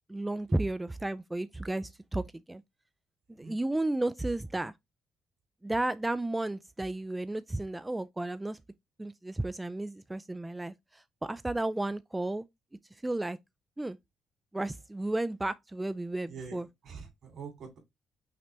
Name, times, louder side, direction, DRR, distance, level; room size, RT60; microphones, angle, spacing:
voice 1, 0.1-2.2 2.5-2.6 3.3-4.7 5.6-8.6 9.0-12.5 12.9-13.4 13.8-14.0 14.5-16.7, right 2 dB, 10° right, 0.3 m, -33 dB
voice 2, 16.3-17.8, right 5 dB, 65° right, 2.5 m, -45 dB
5.8 x 2.7 x 3.3 m
cardioid pair, 90°, 0 cm